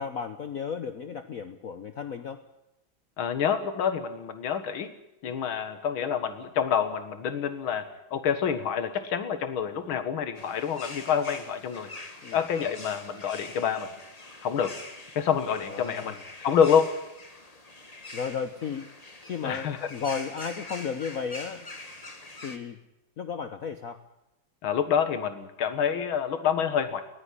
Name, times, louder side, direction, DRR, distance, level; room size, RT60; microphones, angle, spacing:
voice 1, 0.0-2.4 12.2-12.4 15.6-16.2 18.1-18.9 19.2-21.7 22.4-22.8 23.2-24.0, left 6 dB, 50° left, 9 dB, 1.2 m, -34 dB
voice 2, 3.2-4.9 5.2-7.8 8.1-11.9 12.3-13.9 14.4-14.7 15.2-16.9 19.4-19.8 24.6-27.0, left 7 dB, 85° left, 10 dB, 2.3 m, -27 dB
sound 1, 10.3-22.6, left 2 dB, 20° left, 1.8 m, -44 dB
20.0 x 15.5 x 9.9 m, 0.90 s
omnidirectional pair, 2.2 m